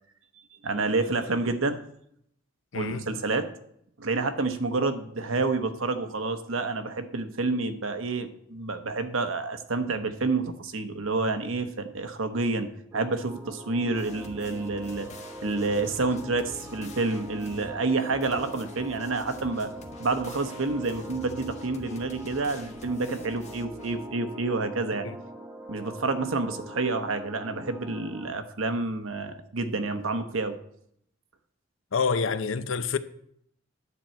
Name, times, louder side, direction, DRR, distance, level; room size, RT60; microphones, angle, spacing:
voice 1, 0.6-1.8 2.7-3.5 4.0-12.7 12.9-15.1 15.4-19.7 20.0-25.1 25.7-30.6, right 3 dB, 85° right, 1.0 m, -29 dB
voice 2, 2.7-3.2 24.9-25.2 31.9-33.0, left 5 dB, 75° left, 0.6 m, -28 dB
sound 1, 12.9-28.3, equal, 10° right, 1.0 m, -43 dB
sound 2, 13.9-24.0, left 2 dB, 35° left, 1.1 m, -48 dB
10.0 x 4.5 x 7.5 m
head